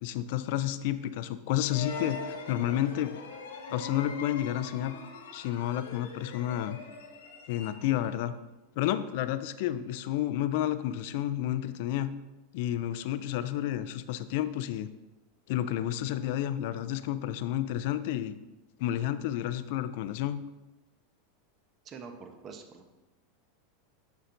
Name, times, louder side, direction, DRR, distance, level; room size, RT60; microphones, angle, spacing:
voice 1, 0.0-3.2 3.7-4.9 5.3-6.8 7.5-8.3 8.8-12.1 12.5-14.9 15.5-18.4 18.8-20.4, left 12 dB, 65° left, 13 dB, 0.3 m, -31 dB
sound 1, 1.7-8.1, left 4 dB, 80° left, 0.8 m, -42 dB
voice 2, 21.8-22.9, right 5 dB, 35° right, 6 dB, 0.8 m, -45 dB
6.5 x 5.7 x 2.6 m, 1.1 s
hypercardioid pair, 105°, 0 cm